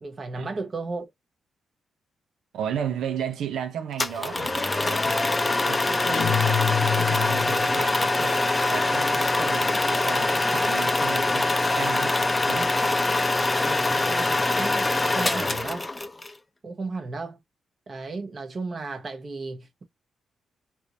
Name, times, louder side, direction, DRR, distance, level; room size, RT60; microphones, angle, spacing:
voice 1, 0.0-1.1 13.6-15.9 16.6-17.4 17.9-19.8, right 3 dB, 35° right, 1.0 m, -34 dB
voice 2, 2.5-5.2 5.7-8.4 8.7-12.7, right 8 dB, 90° right, 0.6 m, -34 dB
sound 1, 4.0-16.3, left 2 dB, 15° left, 0.5 m, -24 dB
sound 2, 6.1-7.8, left 9 dB, 70° left, 0.5 m, -26 dB
3.4 x 3.0 x 2.5 m
cardioid pair, 130°, 0 cm